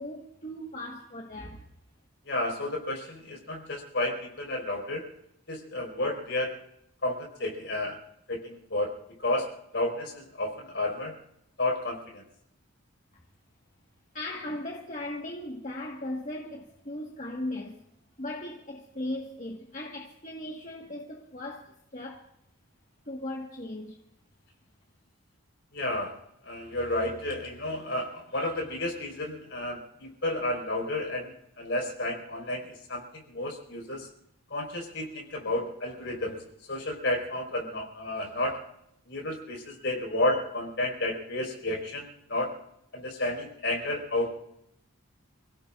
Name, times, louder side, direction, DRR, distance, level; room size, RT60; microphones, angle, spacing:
voice 1, 0.0-1.6 14.1-17.8 18.2-22.3 23.0-24.0, left 1 dB, 35° left, 1.6 m, -38 dB
voice 2, 2.3-5.0 5.5-6.6 7.0-8.0 8.3-11.1 11.6-12.2 25.7-26.1 26.4-34.1 34.5-36.4 36.7-38.6 39.1-42.5 42.9-44.4, left 1 dB, 55° left, 4.7 m, -31 dB
28.5 x 16.5 x 2.5 m
head